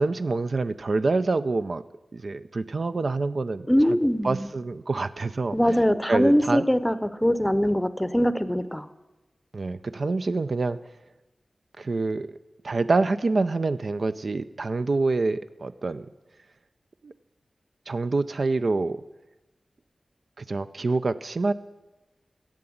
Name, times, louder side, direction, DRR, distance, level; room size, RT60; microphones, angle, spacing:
voice 1, 0.0-1.8 2.1-4.0 4.2-5.7 6.1-6.6 9.5-10.8 11.8-12.4 12.6-16.1 17.0-17.1 17.9-19.0 20.4-21.5, right 3 dB, 65° right, 12 dB, 0.4 m, -26 dB
voice 2, 3.7-4.5 5.5-8.9, equal, 10° left, 14 dB, 0.7 m, -22 dB
10.5 x 7.8 x 8.6 m, 1.1 s
wide cardioid pair, 60°, 0 cm